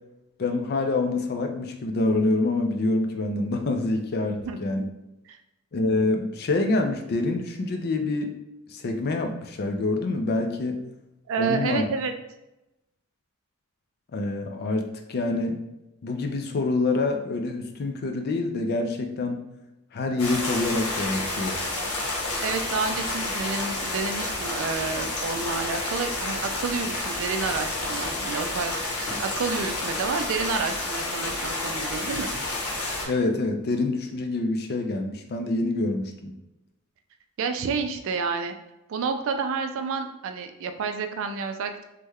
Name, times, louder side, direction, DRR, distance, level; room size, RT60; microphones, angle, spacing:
voice 1, 0.4-4.8 5.7-8.4 8.7-10.8 11.4-11.8 14.1-15.6 16.0-19.4 19.9-21.6 32.4-32.5 33.1-36.3, left 2 dB, 45° left, 5 dB, 0.4 m, -26 dB
voice 2, 4.3-4.9 5.3-5.4 11.3-12.1 22.4-32.3 37.4-38.5 38.9-41.8, right 5 dB, 65° right, 7 dB, 0.3 m, -30 dB
sound 1, 20.2-33.0, left 2 dB, 80° left, 0.9 m, -30 dB
3.1 x 2.2 x 3.4 m, 0.94 s
head